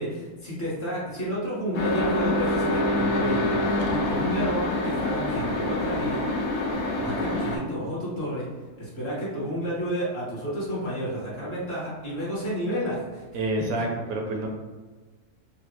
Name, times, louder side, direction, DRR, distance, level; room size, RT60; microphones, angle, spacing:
voice 1, 0.0-6.2 6.7-8.5 8.8-13.2, equal, 45° left, -7 dB, 1.2 m, -31 dB
sound 1, 1.7-7.6, left 1 dB, 75° left, 1.0 m, -26 dB
voice 2, 13.3-14.5, right 2 dB, 80° right, 2 dB, 1.1 m, -28 dB
3.9 x 2.2 x 2.8 m, 1.3 s
omnidirectional pair, 1.5 m